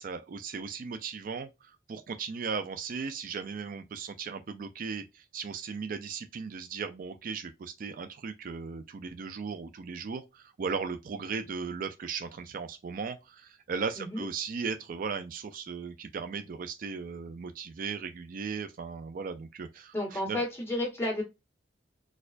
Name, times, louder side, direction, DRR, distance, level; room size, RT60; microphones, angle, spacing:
voice 1, 0.0-20.4, right 5 dB, 50° right, 0.3 m, -37 dB
voice 2, 14.0-14.3 19.9-21.2, left 1 dB, 15° left, 1.7 m, -31 dB
4.3 x 2.3 x 2.4 m
head